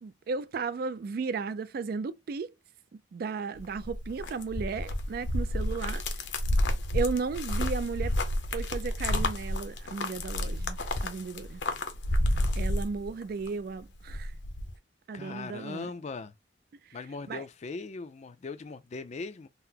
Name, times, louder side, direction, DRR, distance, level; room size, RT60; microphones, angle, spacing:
voice 1, 0.0-2.5 3.1-6.0 6.9-8.1 8.5-11.6 12.6-14.3 15.1-15.9 16.9-17.0 17.3-17.4, right 5 dB, 55° right, 0.3 m, -34 dB
sound 1, 3.6-13.5 13.8-14.7, left 1 dB, 70° left, 0.7 m, -30 dB
voice 2, 15.1-16.3 16.9-19.5, left 4 dB, 35° left, 0.4 m, -39 dB
3.8 x 2.0 x 2.7 m
head